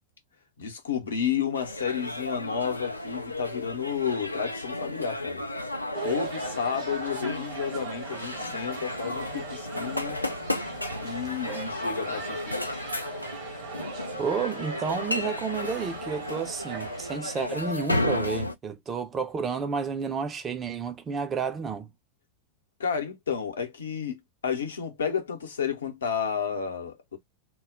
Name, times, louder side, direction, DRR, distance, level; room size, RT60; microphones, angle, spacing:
voice 1, 0.6-5.4 6.0-10.2 11.0-12.5 22.8-27.2, left 7 dB, 70° left, 0.8 m, -31 dB
sound 1, 1.5-18.5, left 1 dB, 85° left, 0.3 m, -33 dB
sound 2, 5.9-17.2, right 6 dB, 45° right, 1.0 m, -40 dB
voice 2, 14.2-21.9, right 5 dB, 20° right, 0.5 m, -31 dB
2.2 x 2.0 x 3.6 m
figure-of-eight pair, 90°, 0 cm